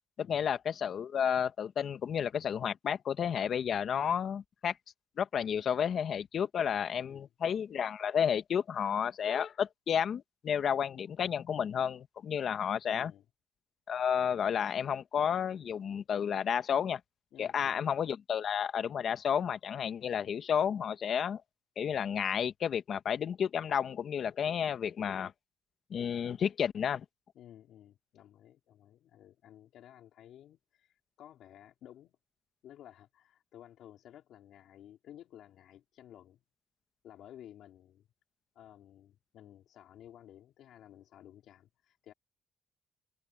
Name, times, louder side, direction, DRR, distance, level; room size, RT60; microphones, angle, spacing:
voice 1, 0.2-4.7 5.2-13.1 13.9-17.0 17.4-21.4 21.8-25.3 25.9-27.0, left 8 dB, 60° left, 1.5 m, -31 dB
voice 2, 7.0-7.3 12.9-13.2 17.3-17.8 27.3-32.2 32.6-36.4 37.0-38.1 38.5-42.1, left 11 dB, 80° left, 4.3 m, -55 dB
cardioid pair, 90°, 0 cm